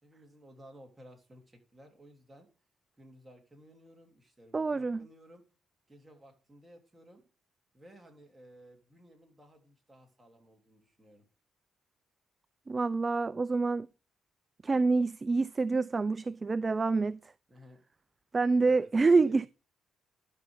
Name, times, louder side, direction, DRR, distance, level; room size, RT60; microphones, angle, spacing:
voice 1, 0.0-2.5 3.0-5.4 5.9-7.3 7.7-11.3 17.5-17.8 18.6-19.5, equal, 15° right, 3.3 m, -56 dB
voice 2, 4.5-5.0 12.7-13.9 14.6-17.2 18.3-19.5, right 3 dB, 30° right, 0.3 m, -27 dB
12.0 x 5.4 x 3.7 m
cardioid pair, 90°, 0 cm